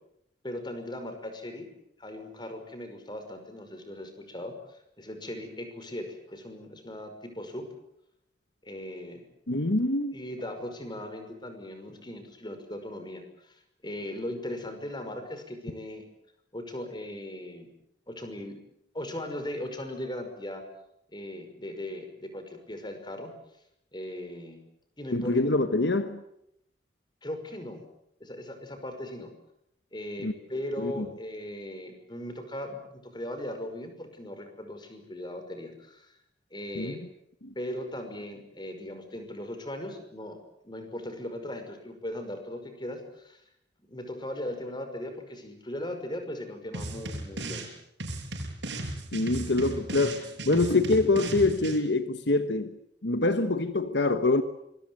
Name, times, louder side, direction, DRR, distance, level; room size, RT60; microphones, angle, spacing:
voice 1, 0.4-1.7 2.0-7.7 8.6-9.3 10.1-16.1 16.5-17.7 18.1-18.6 18.9-20.6 21.1-23.3 23.9-24.6 25.0-25.5 27.2-27.8 28.2-29.3 29.9-36.2 36.5-37.0 37.6-40.4 40.6-43.4 43.9-47.7, left 1 dB, 25° left, 7 dB, 5.5 m, -38 dB
voice 2, 9.5-10.1 25.1-26.2 30.2-30.3 30.8-31.0 36.8-37.0 49.1-52.7 53.0-54.4, left 2 dB, 75° left, 10 dB, 1.4 m, -25 dB
sound 1, 46.7-47.7 48.0-51.8, right 2 dB, 85° right, 7.0 m, -36 dB
26.0 x 22.5 x 7.9 m, 0.78 s
head